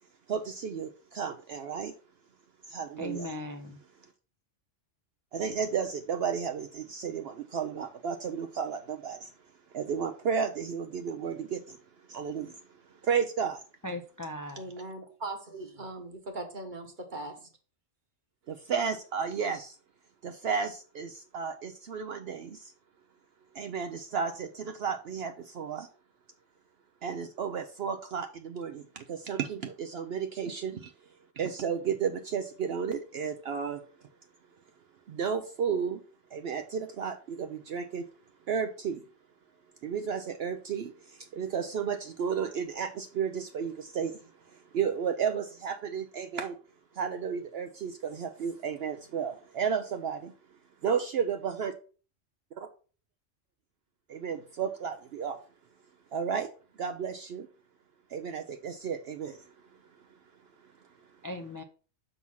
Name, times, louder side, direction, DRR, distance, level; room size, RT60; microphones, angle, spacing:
voice 1, 0.3-1.9 2.7-3.3 5.3-9.3 9.7-11.8 12.1-12.6 12.9-13.6 18.5-19.8 20.2-22.7 23.5-25.9 27.0-30.9 31.4-33.8 35.1-36.0 36.3-38.1 38.5-39.0 39.8-44.2 44.5-46.6 46.9-50.3 50.8-51.7 52.6-52.7 54.1-55.4 56.1-56.5 56.8-57.5 58.1-59.5, right 6 dB, 65° right, 0.7 m, -33 dB
voice 2, 3.0-3.8 13.8-14.7 61.2-61.6, left 1 dB, 25° left, 0.4 m, -38 dB
voice 3, 14.6-17.5, right 2 dB, 40° right, 1.3 m, -40 dB
6.0 x 3.9 x 5.6 m
omnidirectional pair, 1.3 m